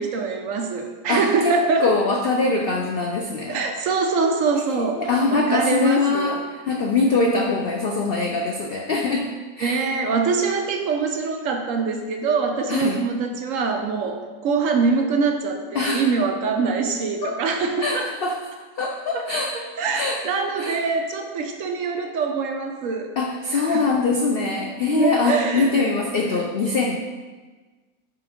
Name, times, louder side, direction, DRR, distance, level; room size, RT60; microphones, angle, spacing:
voice 1, 0.0-1.9 3.5-6.4 9.6-18.1 19.1-19.3 19.5-23.1 23.5-23.9 24.8-25.8 26.2-26.4, right 4 dB, 65° right, 4 dB, 0.9 m, -24 dB
voice 2, 1.1-3.6 4.8-6.4 6.7-9.3 9.6-9.9 12.7-13.0 15.7-16.0 17.2-17.4 17.8-18.4 18.8-19.6 19.9-20.2 20.6-20.8 23.2-26.9, left 3 dB, 80° left, 1 dB, 0.5 m, -23 dB
5.8 x 3.8 x 5.0 m, 1.3 s
omnidirectional pair, 1.6 m